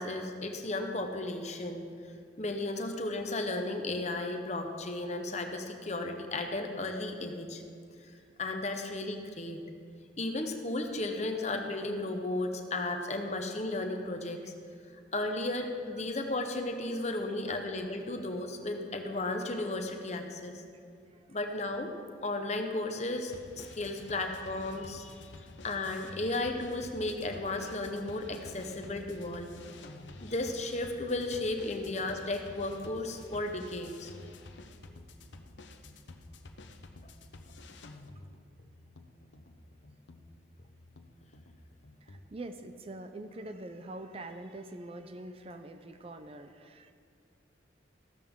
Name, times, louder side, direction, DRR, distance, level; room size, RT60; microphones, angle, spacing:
voice 1, 0.0-1.9 2.4-7.6 8.4-9.6 10.2-14.5 15.1-20.6 21.3-21.9 22.2-25.3 25.6-29.5 30.2-34.1, left 2 dB, 35° left, 5 dB, 0.9 m, -34 dB
sound 1, 23.3-42.2, left 2 dB, 75° left, 0.8 m, -50 dB
voice 2, 42.0-46.9, right 2 dB, 30° right, 8 dB, 0.5 m, -44 dB
14.5 x 13.0 x 3.7 m, 2.2 s
head